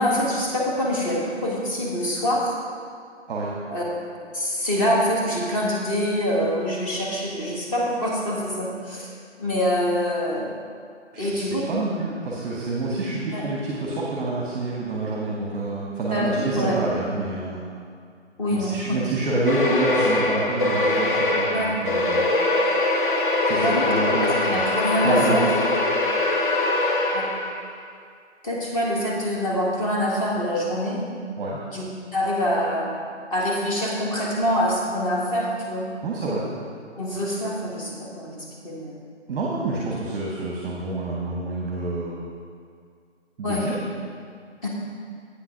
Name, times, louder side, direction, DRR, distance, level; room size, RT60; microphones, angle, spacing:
voice 1, 0.0-2.6 3.7-3.8 4.1-9.1 9.4-10.5 11.2-11.6 13.3-13.4 16.1-16.8 18.4-19.0 21.5-21.8 23.6-23.9 24.2-25.4 27.1-27.2 28.4-31.0 31.7-33.0 33.3-35.9 36.9-38.4 38.6-38.9 43.4-43.7 44.6-44.7, equal, 30° left, -4 dB, 1.7 m, -25 dB
voice 2, 11.1-17.7 18.5-22.2 23.4-24.6 25.0-25.5 31.4-31.6 36.0-36.4 39.3-42.2 43.4-43.8, right 2 dB, 15° right, -4 dB, 1.0 m, -27 dB
sound 1, 19.5-27.7, left 2 dB, 45° left, 0.8 m, -22 dB
8.4 x 6.0 x 5.7 m, 2.1 s
figure-of-eight pair, 150°, 36 cm